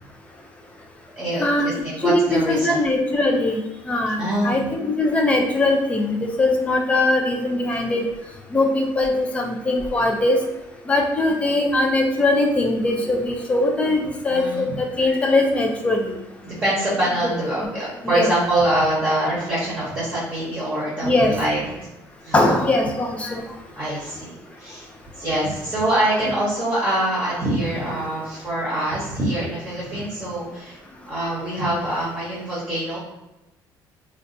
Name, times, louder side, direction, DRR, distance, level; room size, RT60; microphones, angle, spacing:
voice 1, 1.2-2.8 4.2-4.6 14.3-14.7 16.4-21.8 22.2-22.6 23.8-24.3 24.6-24.9 25.2-30.8 31.0-33.0, right 1 dB, 20° right, -8 dB, 0.8 m, -24 dB
voice 2, 2.0-3.6 3.9-8.0 8.5-10.4 10.9-16.1 18.0-18.3 21.0-21.3 22.3-23.4, left 2 dB, 15° left, 2 dB, 0.3 m, -21 dB
3.8 x 2.2 x 2.5 m, 0.96 s
cardioid pair, 175°, 8 cm